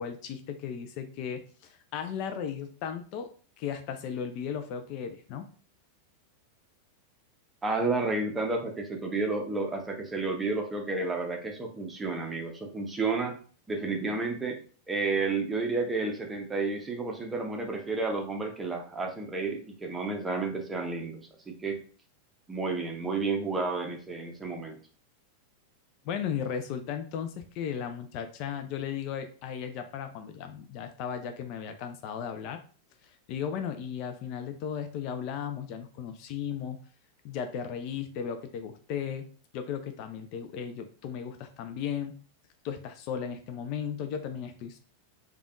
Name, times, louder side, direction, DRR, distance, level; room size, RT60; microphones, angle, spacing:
voice 1, 0.0-3.3 3.6-5.5 26.0-32.6 33.0-36.8 37.2-39.3 39.5-42.1 42.6-44.8, left 8 dB, 45° left, 8 dB, 0.3 m, -36 dB
voice 2, 7.6-13.4 13.7-14.6 14.9-21.8 22.5-24.8, right 3 dB, 15° right, 3 dB, 0.6 m, -31 dB
3.3 x 2.2 x 2.4 m, 0.41 s
figure-of-eight pair, 90°, 0 cm